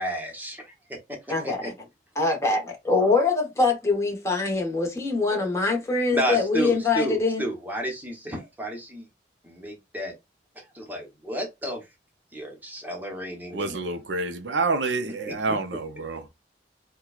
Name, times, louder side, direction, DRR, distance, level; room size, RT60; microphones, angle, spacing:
voice 1, 0.0-1.2 1.4-1.7 6.1-9.0 9.4-10.1 10.6-11.8 12.3-13.8 15.3-15.6, right 1 dB, 10° right, 0.9 m, -32 dB
voice 2, 1.3-1.7 2.2-7.5, left 3 dB, 15° left, 1.0 m, -24 dB
voice 3, 13.5-16.3, right 3 dB, 90° right, 0.6 m, -28 dB
4.3 x 2.3 x 2.4 m
head